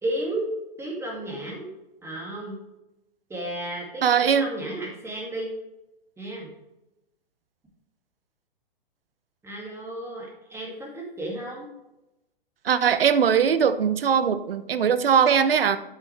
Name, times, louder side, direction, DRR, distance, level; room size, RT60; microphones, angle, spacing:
voice 1, 0.0-0.5 0.8-1.7 2.0-2.6 3.3-5.5 6.2-6.5 9.4-11.7, right 1 dB, 10° right, -2 dB, 2.3 m, -33 dB
voice 2, 4.0-4.5 12.6-15.8, right 7 dB, 70° right, 13 dB, 0.8 m, -20 dB
9.0 x 8.2 x 3.4 m, 0.93 s
figure-of-eight pair, 115°, 29 cm